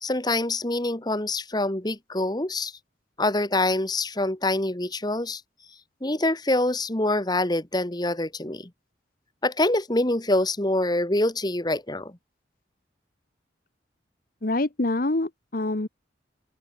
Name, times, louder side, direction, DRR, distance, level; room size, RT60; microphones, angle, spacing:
voice 1, 0.0-2.7 3.2-5.4 6.0-8.7 9.4-12.1, left 2 dB, 20° left, 1.7 m, -25 dB
voice 2, 14.4-15.9, left 2 dB, 50° left, 1.1 m, -26 dB
open air
head